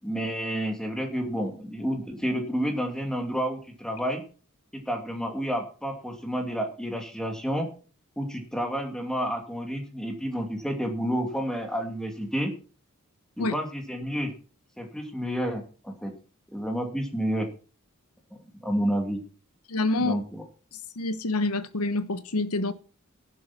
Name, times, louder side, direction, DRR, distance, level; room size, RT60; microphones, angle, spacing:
voice 1, 0.0-4.2 4.7-7.7 8.2-12.5 13.4-14.3 14.8-16.1 16.5-17.5 18.6-19.2 20.0-20.4, equal, 5° left, 2.7 m, -30 dB
voice 2, 19.7-20.1 20.7-22.7, left 2 dB, 85° left, 1.3 m, -27 dB
11.0 x 10.5 x 6.0 m
head